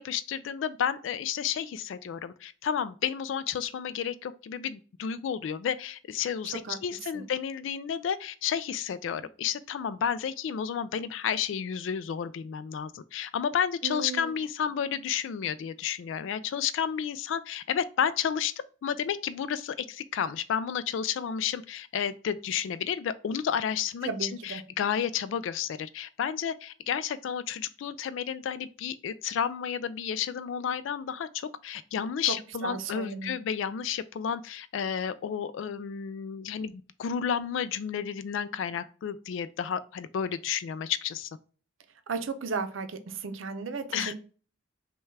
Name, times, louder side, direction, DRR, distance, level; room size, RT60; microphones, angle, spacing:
voice 1, 0.0-18.5 18.8-41.3 43.9-44.1, left 8 dB, 70° left, 0.3 m, -31 dB
voice 2, 13.8-14.3 24.0-24.6 32.3-33.4 42.1-44.2, right 4 dB, 80° right, 0.6 m, -35 dB
5.4 x 2.3 x 3.2 m
head